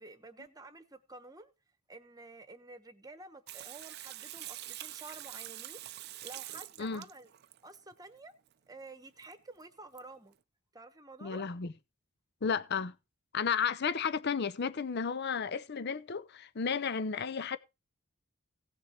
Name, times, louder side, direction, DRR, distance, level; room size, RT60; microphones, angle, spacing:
voice 1, 0.0-1.5 1.9-5.8 6.2-7.3 7.6-8.3 8.7-10.4 10.7-11.4, right 2 dB, 15° right, 1.1 m, -50 dB
Water tap faucet / Sink (filling or washing), 3.5-7.8 9.2-9.3 9.6-9.7 10.0-10.1, right 14 dB, 50° right, 0.5 m, -45 dB
voice 2, 11.2-11.7 12.4-12.9 13.3-17.6, left 6 dB, 50° left, 0.6 m, -33 dB
17.0 x 6.3 x 4.2 m
head